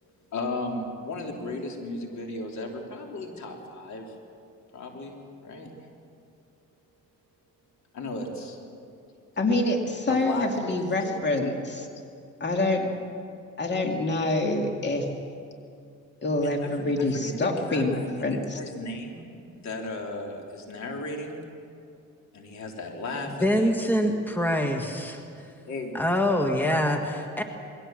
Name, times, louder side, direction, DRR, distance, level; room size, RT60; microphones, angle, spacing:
voice 1, 0.3-4.0 4.7-5.7 7.9-8.6 10.1-10.5 11.0-11.3 16.4-21.4 22.3-23.7 25.7-25.9, left 2 dB, 65° left, 1 dB, 3.4 m, -35 dB
voice 2, 9.4-11.9 12.4-12.9 13.6-15.0 16.2-18.6, left 2 dB, 35° left, 3 dB, 2.4 m, -26 dB
voice 3, 23.3-25.2 25.9-27.4, equal, 5° left, 4 dB, 1.7 m, -25 dB
21.5 x 17.0 x 7.6 m, 2.5 s
cardioid pair, 90°, 30 cm